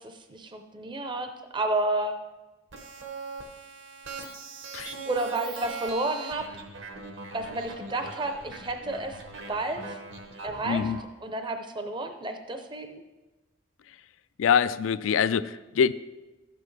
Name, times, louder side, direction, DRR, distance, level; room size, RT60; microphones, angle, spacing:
voice 1, 0.0-2.2 5.1-6.6 7.3-9.2 9.5-10.0 10.4-10.8 11.2-13.0, right 2 dB, 25° right, 6 dB, 0.6 m, -31 dB
sound 1, 2.7-11.0, right 4 dB, 65° right, 1.1 m, -41 dB
voice 2, 10.7-11.0 14.4-15.9, left 7 dB, 75° left, 15 dB, 0.3 m, -24 dB
13.0 x 8.6 x 3.2 m, 1.1 s
head